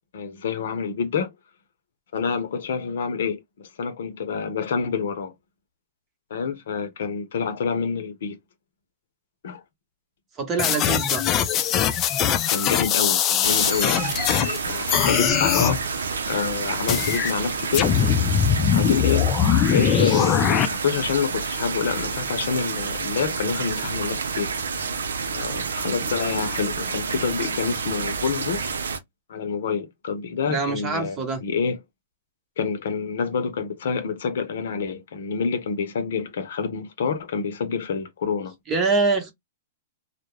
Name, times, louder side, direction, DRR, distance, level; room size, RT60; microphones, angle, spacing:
voice 1, 0.1-1.3 2.1-5.3 6.3-8.4 9.4-9.6 12.5-14.0 14.6-18.0 18.7-19.3 19.7-24.5 25.3-28.8 29.3-31.8 32.6-38.5, left 6 dB, 70° left, 0.7 m, -27 dB
voice 2, 10.4-11.3 30.5-31.4 38.7-39.3, right 4 dB, 25° right, 0.9 m, -24 dB
sound 1, 10.6-14.6 14.9-15.8 16.9-17.3 17.7-20.7, left 9 dB, 30° left, 0.4 m, -21 dB
sound 2, 13.4-29.0, right 5 dB, 85° right, 0.5 m, -29 dB
2.3 x 2.0 x 3.0 m
hypercardioid pair, 125°, 0 cm